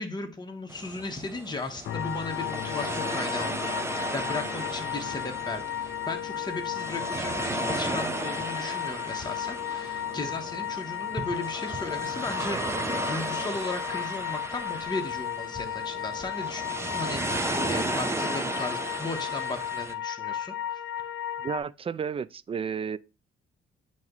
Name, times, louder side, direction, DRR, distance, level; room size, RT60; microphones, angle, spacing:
voice 1, 0.0-20.8, left 3 dB, 20° left, 1.3 m, -36 dB
sound 1, 0.7-19.9, right 2 dB, 15° right, 0.7 m, -35 dB
sound 2, 1.8-16.9 17.3-17.5, left 11 dB, 60° left, 0.4 m, -45 dB
sound 3, 1.9-21.6, left 10 dB, 80° left, 0.8 m, -34 dB
voice 2, 21.4-23.0, right 6 dB, 30° right, 0.3 m, -32 dB
8.9 x 3.0 x 3.9 m
cardioid pair, 90°, 20 cm